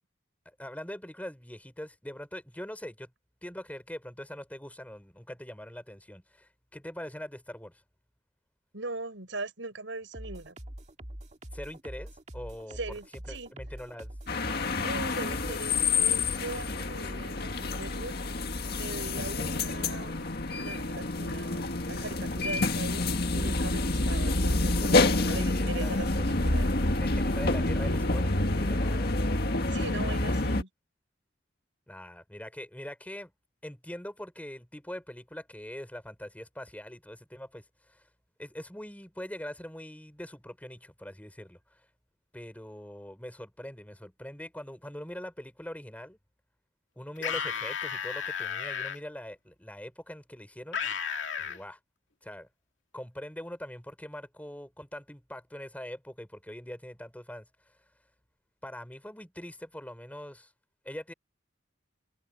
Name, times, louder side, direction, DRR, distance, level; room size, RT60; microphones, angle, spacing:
voice 1, 0.5-3.1 3.4-7.8 11.5-13.0 13.3-14.1 25.1-26.0 27.0-29.2 31.9-33.3 33.6-38.1 38.4-41.9 42.3-46.2 47.0-51.0 51.4-51.8 52.2-52.5 52.9-57.8 58.6-60.5 60.8-61.1, left 1 dB, 10° left, 5.7 m, -43 dB
voice 2, 8.7-10.6 12.7-13.5 14.8-18.1 18.8-20.2 20.5-26.7 29.7-30.7, right 2 dB, 80° right, 5.8 m, -40 dB
sound 1, 10.1-17.0, right 1 dB, 40° right, 2.1 m, -44 dB
sound 2, 14.3-30.6, left 2 dB, 55° left, 1.8 m, -28 dB
sound 3, 47.2-49.0 50.7-51.6, left 7 dB, 80° left, 2.2 m, -33 dB
head